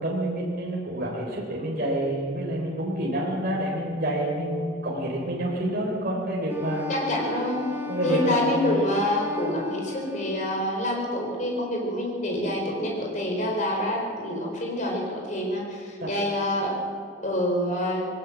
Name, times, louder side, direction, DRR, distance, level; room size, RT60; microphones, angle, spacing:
voice 1, 0.0-6.8 7.9-8.8 16.0-16.1, right 1 dB, 45° right, -3 dB, 4.0 m, -28 dB
Wind instrument woodwind instrument, 6.5-10.8, left 2 dB, 10° right, 1.4 m, -35 dB
voice 2, 6.9-7.6 8.0-16.7 17.2-18.0, left 1 dB, 40° left, 0 dB, 4.4 m, -27 dB
20.5 x 18.5 x 7.4 m, 2.2 s
head